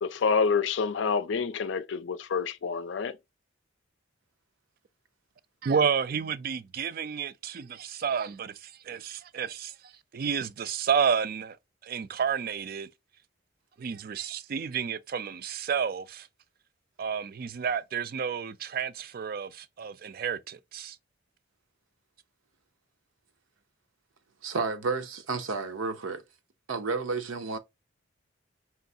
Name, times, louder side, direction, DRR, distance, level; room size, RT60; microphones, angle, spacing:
voice 1, 0.0-3.2, left 5 dB, 65° left, 0.4 m, -27 dB
voice 2, 5.6-11.6 11.8-12.9 13.8-16.3 17.0-21.0, right 7 dB, 45° right, 0.4 m, -31 dB
voice 3, 24.4-26.2 26.7-27.6, right 4 dB, 85° right, 0.7 m, -31 dB
4.5 x 3.0 x 2.6 m
head